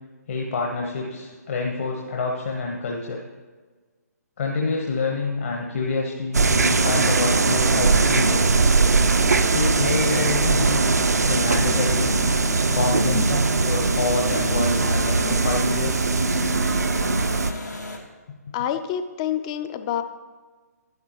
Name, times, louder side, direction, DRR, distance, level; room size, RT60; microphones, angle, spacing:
voice 1, 0.3-3.2 4.4-8.4 9.5-10.8 11.3-12.1 12.7-16.1, left 3 dB, 45° left, -1 dB, 1.1 m, -27 dB
sound 1, 6.3-17.5, right 4 dB, 70° right, 0.5 m, -20 dB
sound 2, 6.8-18.0, left 2 dB, 90° left, 1.7 m, -35 dB
voice 2, 18.5-20.0, left 10 dB, 20° left, 11 dB, 0.4 m, -27 dB
11.0 x 10.5 x 3.0 m, 1.4 s
figure-of-eight pair, 135°, 9 cm